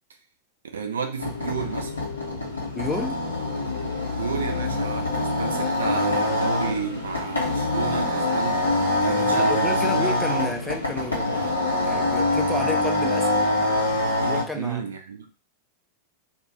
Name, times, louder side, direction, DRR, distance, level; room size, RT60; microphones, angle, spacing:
voice 1, 0.7-1.9 4.1-10.2 14.5-15.3, right 6 dB, 70° right, 6 dB, 0.5 m, -32 dB
sound 1, 1.2-14.4, left 2 dB, 80° left, 0.9 m, -24 dB
voice 2, 2.8-3.2 9.1-11.4 11.8-13.3 14.3-14.8, left 1 dB, 5° left, 3 dB, 0.4 m, -31 dB
2.5 x 2.5 x 3.1 m, 0.34 s
figure-of-eight pair, 90°, 0 cm